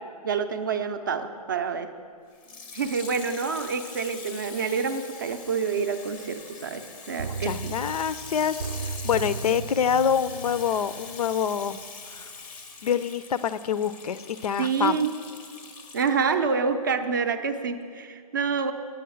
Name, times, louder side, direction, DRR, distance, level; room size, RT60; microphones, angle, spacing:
voice 1, 0.2-1.9 2.7-7.7 14.6-15.1 15.9-18.7, right 5 dB, 30° right, 7 dB, 0.5 m, -27 dB
Water tap faucet / Sink (filling or washing), 2.3-16.3 17.0-17.1, left 4 dB, 15° left, 0.5 m, -43 dB
sound 1, 7.2-11.9 12.2-12.3, right 5 dB, 80° right, 0.6 m, -36 dB
voice 2, 7.4-11.8 12.1-12.3 12.8-15.0, left 8 dB, 70° left, 15 dB, 0.5 m, -26 dB
9.9 x 8.6 x 7.0 m, 2.1 s
hypercardioid pair, 170°, 20 cm